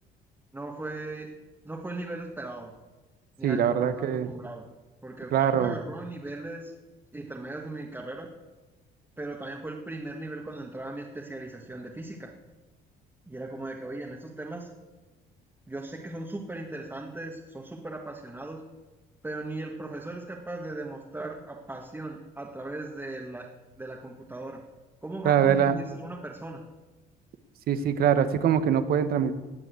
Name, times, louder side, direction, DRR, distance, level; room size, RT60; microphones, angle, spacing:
voice 1, 0.5-1.4 1.6-2.7 3.4-4.6 5.0-6.7 7.1-8.3 9.2-12.3 13.3-14.7 15.7-18.6 19.2-23.5 23.8-24.6 25.0-26.6, right 2 dB, 10° right, -2 dB, 1.8 m, -38 dB
voice 2, 3.4-4.4 5.3-5.8 25.2-25.8 27.7-29.3, right 8 dB, 65° right, 11 dB, 1.3 m, -23 dB
18.5 x 7.2 x 8.3 m, 1.2 s
cardioid pair, 110°, 17 cm